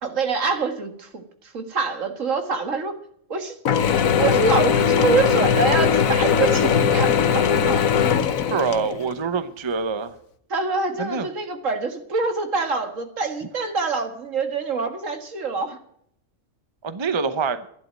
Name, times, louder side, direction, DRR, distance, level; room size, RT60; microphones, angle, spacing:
voice 1, 0.0-2.9 3.3-3.6 4.2-7.9 10.5-15.8, right 4 dB, 70° right, 6 dB, 2.1 m, -25 dB
Mechanisms / Drill, 3.7-9.2, left 7 dB, 85° left, 1.3 m, -20 dB
voice 2, 8.5-10.1 11.0-11.3 16.8-17.7, right 5 dB, 25° right, 12 dB, 0.8 m, -25 dB
12.0 x 10.5 x 7.5 m, 0.69 s
omnidirectional pair, 1.4 m